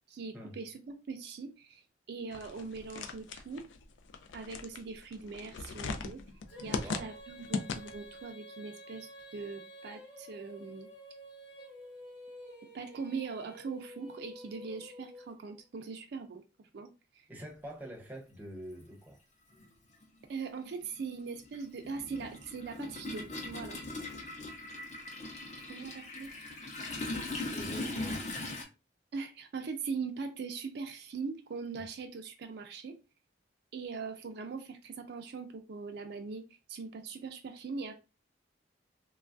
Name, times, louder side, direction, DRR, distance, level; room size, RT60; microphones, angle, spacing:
voice 1, 0.1-3.7 4.3-6.2 6.6-10.9 12.7-16.4 16.7-17.3 20.3-23.8 25.7-26.3 29.1-33.0 33.7-36.4 36.7-37.9, right 4 dB, 65° right, 0.4 m, -41 dB
sound 1, 2.3-8.2, left 4 dB, 80° left, 0.4 m, -39 dB
Female singing, 6.5-15.6, equal, 65° left, 1.1 m, -50 dB
voice 2, 6.7-7.1 17.3-19.2 27.5-28.5 31.7-31.8, equal, 10° right, 0.7 m, -45 dB
Toilet flush, 18.2-18.3 19.5-19.7 20.0-28.6, left 2 dB, 40° left, 0.7 m, -40 dB
3.1 x 2.3 x 2.4 m
head